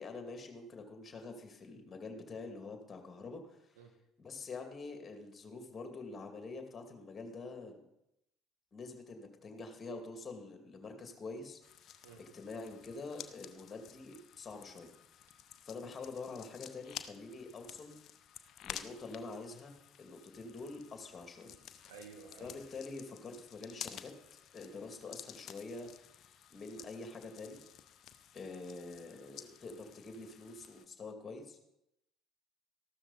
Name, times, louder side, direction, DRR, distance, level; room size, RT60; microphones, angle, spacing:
voice 1, 0.0-3.8 4.2-7.8 8.7-11.6 12.2-14.9 15.6-18.0 18.6-19.7 20.0-21.6 22.4-24.1 24.5-27.6 28.3-31.6, left 3 dB, 30° left, 5 dB, 2.3 m, -46 dB
sound 1, 11.6-30.8, left 9 dB, 50° left, 0.8 m, -52 dB
voice 2, 21.9-22.5, right 5 dB, 75° right, 3 dB, 1.6 m, -52 dB
14.0 x 12.5 x 4.0 m, 0.83 s
figure-of-eight pair, 60°, 0 cm